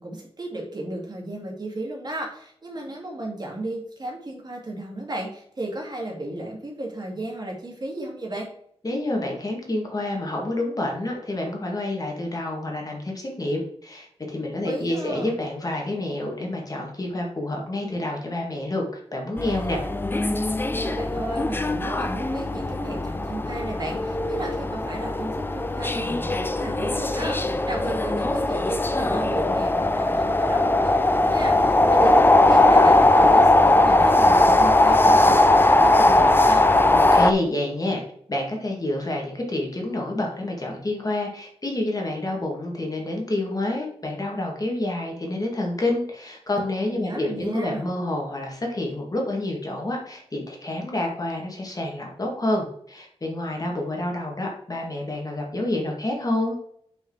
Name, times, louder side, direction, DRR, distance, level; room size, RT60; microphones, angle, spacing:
voice 1, 0.0-8.5 14.6-15.3 20.7-36.6 46.9-47.9, right 1 dB, 40° right, 0 dB, 2.2 m, -34 dB
voice 2, 8.8-18.9 19.1-19.8 36.9-38.0 38.3-56.6, left 1 dB, 35° left, 0 dB, 1.9 m, -28 dB
sound 1, 19.4-37.3, left 2 dB, 20° left, 0.5 m, -19 dB
5.6 x 5.2 x 4.8 m, 0.68 s
wide cardioid pair, 100°, 11 cm